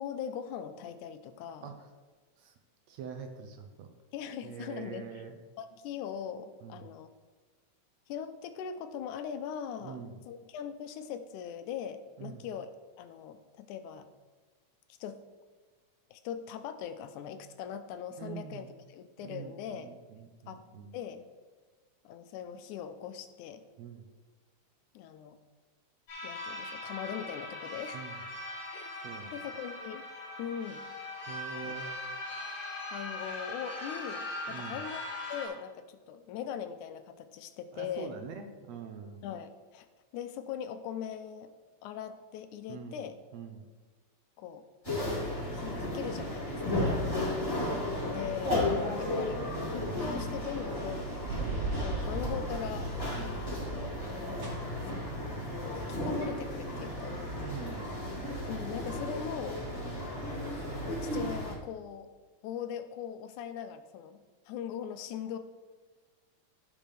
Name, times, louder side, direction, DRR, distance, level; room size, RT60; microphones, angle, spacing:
voice 1, 0.0-1.7 4.1-5.1 5.6-7.1 8.1-12.7 13.0-14.1 14.9-15.2 16.1-18.6 18.9-19.9 20.5-20.6 20.9-21.2 22.1-23.6 24.9-25.4 26.2-28.0 28.7-28.9 29.3-30.0 30.4-30.9 31.6-31.7 32.9-35.0 35.3-38.2 39.2-39.9 40.1-41.5 41.8-43.2 44.4-44.6 45.5-46.9 48.1-49.4 49.7-51.3 51.8-52.9 54.3-55.2 55.6-57.1 58.5-59.6 60.8-62.1 62.4-64.2 64.5-65.4, left 8 dB, 85° left, 9 dB, 2.1 m, -40 dB
voice 2, 2.9-3.9 4.4-5.4 6.6-6.9 9.8-10.2 12.2-12.5 18.2-18.7 19.2-21.0 23.8-24.1 27.9-28.2 29.0-29.3 31.3-32.0 34.5-34.8 37.7-39.3 42.7-43.0 43.3-43.7 46.8-47.3 53.1-53.5 57.3-58.0, right 6 dB, 75° right, 5 dB, 1.7 m, -44 dB
sound 1, 26.1-35.5, left 1 dB, 60° left, 4.0 m, -40 dB
sound 2, 44.8-61.5, left 1 dB, 10° left, 2.8 m, -34 dB
sound 3, 51.3-54.1 54.4-57.9, right 2 dB, 30° right, 1.4 m, -39 dB
14.5 x 5.3 x 3.4 m, 1.3 s
omnidirectional pair, 3.4 m